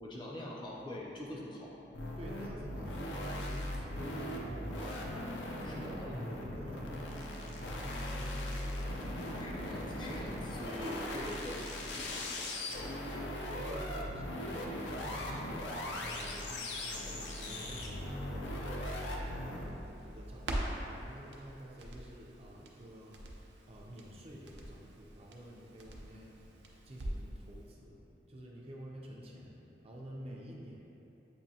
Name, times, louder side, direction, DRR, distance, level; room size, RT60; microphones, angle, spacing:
voice 1, 0.0-1.8 5.6-6.3 9.4-12.5 30.2-30.3, left 1 dB, 25° left, -4 dB, 0.5 m, -44 dB
sound 1, 1.9-19.7, left 1 dB, 90° left, 0.5 m, -39 dB
voice 2, 2.0-9.5 12.8-30.8, equal, 35° right, -3 dB, 0.4 m, -50 dB
Crackle, 17.6-27.4 27.7-27.8, right 1 dB, 80° right, 0.5 m, -44 dB
7.4 x 2.6 x 2.7 m, 3.0 s
head